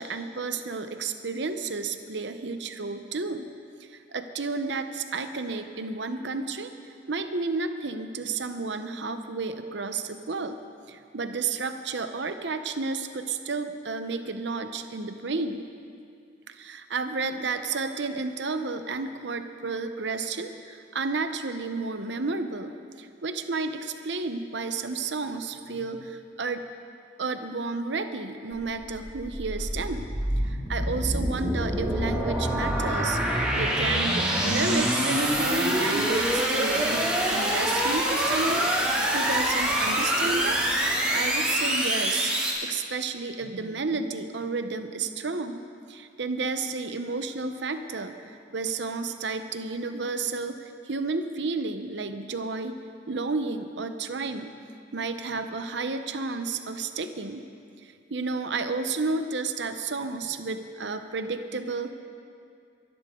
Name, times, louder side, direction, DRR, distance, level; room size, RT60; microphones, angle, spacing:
voice 1, 0.0-3.5 3.8-6.7 7.1-10.6 10.9-15.7 16.5-26.6 27.2-40.6 41.1-52.8 53.1-54.5 54.9-57.5 57.8-61.9, right 3 dB, 70° right, 8 dB, 0.8 m, -32 dB
sound 1, 28.5-42.5, right 1 dB, 5° right, 2.3 m, -26 dB
23.0 x 11.5 x 3.8 m, 2.4 s
head